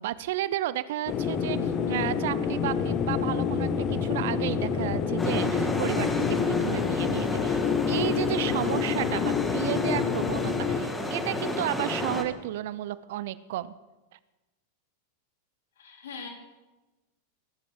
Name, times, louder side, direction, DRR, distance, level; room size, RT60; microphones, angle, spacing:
voice 1, 0.0-7.6 7.9-13.7, right 14 dB, 55° right, 18 dB, 0.5 m, -32 dB
sound 1, 1.1-10.8, left 6 dB, 35° left, 1.3 m, -27 dB
sound 2, 5.2-12.2, left 1 dB, 10° left, 1.7 m, -32 dB
voice 2, 15.8-16.3, left 5 dB, 60° left, 2 dB, 3.1 m, -41 dB
21.0 x 12.5 x 3.8 m, 1.1 s
figure-of-eight pair, 90°, 0 cm